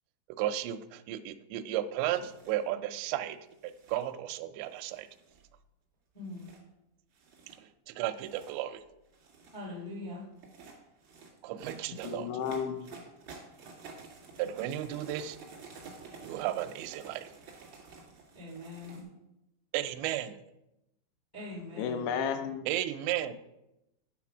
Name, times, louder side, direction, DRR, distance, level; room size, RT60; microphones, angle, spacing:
voice 1, 0.4-3.4 3.6-5.1 7.9-8.8 11.4-12.3 14.4-15.4 16.2-17.3 19.7-20.4 22.7-23.3, right 12 dB, 85° right, 9 dB, 2.5 m, -34 dB
sound 1, 2.1-2.6 3.5-4.1 4.7-5.5 6.2-6.6 7.1-7.6 8.1-8.5 9.0-9.6 10.3-19.0, right 4 dB, 70° right, 1.1 m, -51 dB
voice 2, 6.1-6.5 9.5-10.2 18.3-19.0 21.3-22.1, left 2 dB, 35° left, -4 dB, 0.6 m, -42 dB
voice 3, 12.0-12.9 21.8-22.6, left 7 dB, 80° left, 7 dB, 2.8 m, -32 dB
10.0 x 4.2 x 6.0 m, 0.90 s
omnidirectional pair, 5.5 m